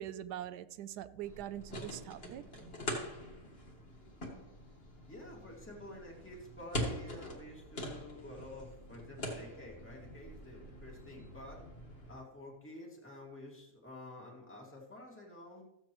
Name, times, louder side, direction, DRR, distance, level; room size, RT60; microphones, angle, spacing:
voice 1, 0.0-2.9, right 11 dB, 80° right, 1.1 m, -43 dB
sound 1, 1.2-12.1, left 1 dB, 35° left, 2.0 m, -44 dB
voice 2, 5.1-11.6 12.1-15.6, left 1 dB, 5° left, 2.1 m, -50 dB
14.5 x 8.0 x 3.0 m
omnidirectional pair, 1.8 m